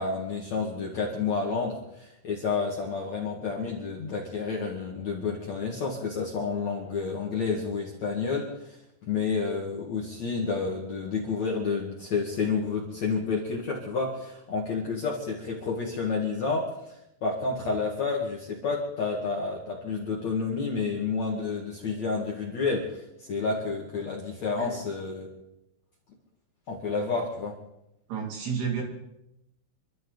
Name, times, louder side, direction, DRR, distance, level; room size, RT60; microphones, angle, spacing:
voice 1, 0.0-25.3 26.7-27.5, left 4 dB, 50° left, -2 dB, 2.3 m, -30 dB
voice 2, 28.1-28.8, right 6 dB, 60° right, 1 dB, 4.4 m, -31 dB
28.5 x 12.5 x 4.0 m, 0.86 s
omnidirectional pair, 5.7 m